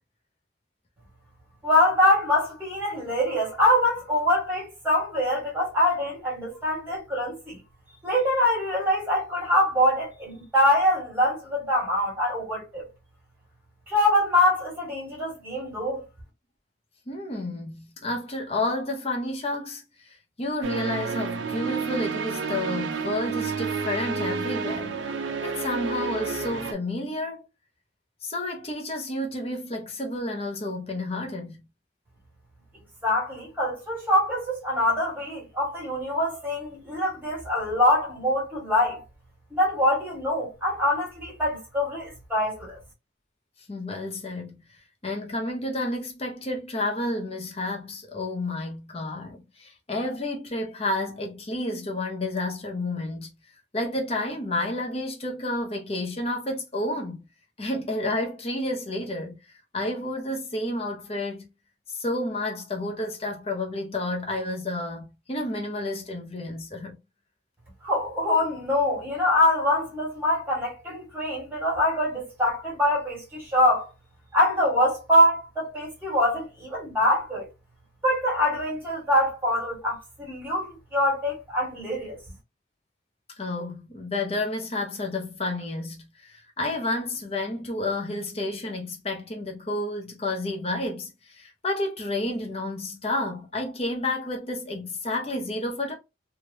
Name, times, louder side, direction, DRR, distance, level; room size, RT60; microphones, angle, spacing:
voice 1, 1.6-7.6 8.0-12.9 13.9-16.0 33.0-39.0 39.5-42.8 67.8-73.9 74.3-77.5 78.0-82.2, left 1 dB, 10° right, 1.9 m, -24 dB
voice 2, 17.1-25.0 25.4-27.4 28.2-31.6 43.7-44.6 45.0-53.3 53.7-57.2 57.6-59.4 59.7-61.5 61.9-67.0 83.4-95.9, left 1 dB, 30° left, 0.7 m, -30 dB
sound 1, 20.6-26.7, right 5 dB, 70° right, 0.5 m, -30 dB
3.2 x 2.4 x 2.7 m
head